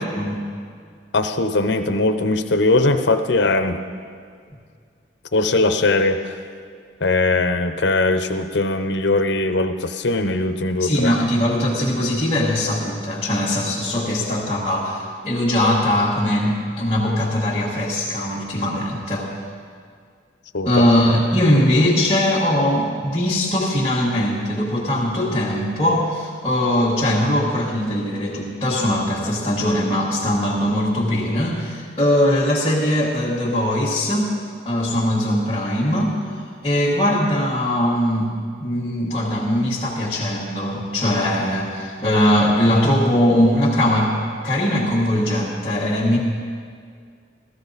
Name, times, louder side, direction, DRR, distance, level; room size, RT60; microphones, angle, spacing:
voice 1, 1.1-3.8 5.3-6.3 7.0-11.2 20.5-20.7, left 2 dB, 75° left, 8 dB, 0.8 m, -20 dB
voice 2, 10.8-19.3 20.6-34.3 34.6-44.1 44.4-46.2, left 1 dB, 25° left, -8 dB, 1.6 m, -20 dB
15.0 x 14.5 x 4.1 m, 2.1 s
head